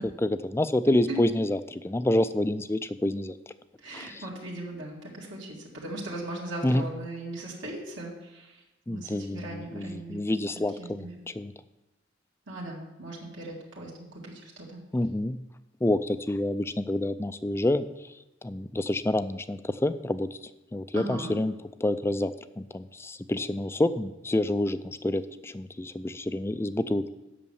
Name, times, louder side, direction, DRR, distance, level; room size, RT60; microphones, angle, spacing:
voice 1, 0.2-3.4 3.9-4.2 6.6-6.8 8.9-11.1 11.4-11.5 14.9-15.4 15.8-17.9 18.4-20.3 20.7-21.5 21.8-22.3 22.6-27.1, left 1 dB, 15° left, 12 dB, 0.4 m, -28 dB
voice 2, 3.8-10.2 10.7-11.2 12.5-14.8 20.9-21.3, right 2 dB, 75° right, -4 dB, 2.1 m, -39 dB
8.3 x 6.6 x 7.0 m, 0.98 s
head